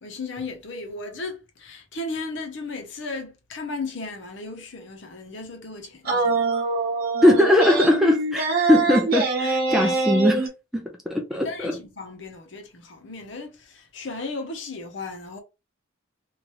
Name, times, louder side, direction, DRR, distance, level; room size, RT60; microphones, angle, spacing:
voice 1, 0.0-6.5 11.4-15.4, left 3 dB, 60° left, 0.8 m, -35 dB
sound 1, 6.0-10.5, right 3 dB, 45° right, 1.0 m, -24 dB
voice 2, 7.2-10.5 10.7-11.7, left 1 dB, ahead, 0.5 m, -20 dB
3.0 x 2.5 x 3.1 m
head